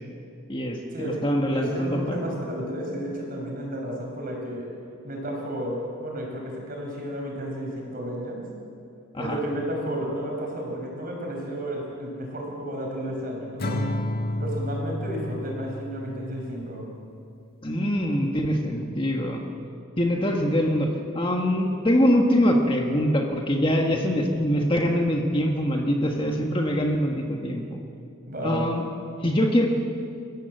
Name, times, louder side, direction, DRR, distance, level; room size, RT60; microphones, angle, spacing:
voice 1, 0.5-2.1 9.1-9.4 17.6-19.4 20.0-27.8 28.4-28.9 29.2-29.7, equal, 25° left, 1 dB, 1.6 m, -23 dB
voice 2, 1.5-4.7 5.0-8.5 9.2-13.8 14.4-16.9 28.3-28.7, equal, 40° right, 0 dB, 6.0 m, -32 dB
Acoustic guitar / Strum, 13.6-16.9, left 1 dB, 45° left, 1.7 m, -31 dB
29.0 x 15.5 x 7.9 m, 2.5 s
head